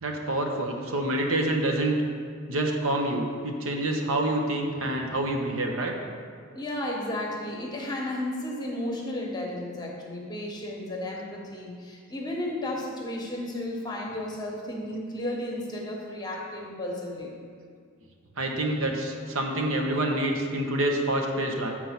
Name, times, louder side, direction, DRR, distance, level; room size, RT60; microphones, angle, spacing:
voice 1, 0.0-2.0 2.5-5.9 18.4-21.7, right 1 dB, 70° right, 2 dB, 0.9 m, -27 dB
voice 2, 6.5-17.4, left 1 dB, 20° left, -2 dB, 1.0 m, -33 dB
6.8 x 4.5 x 5.8 m, 2.1 s
head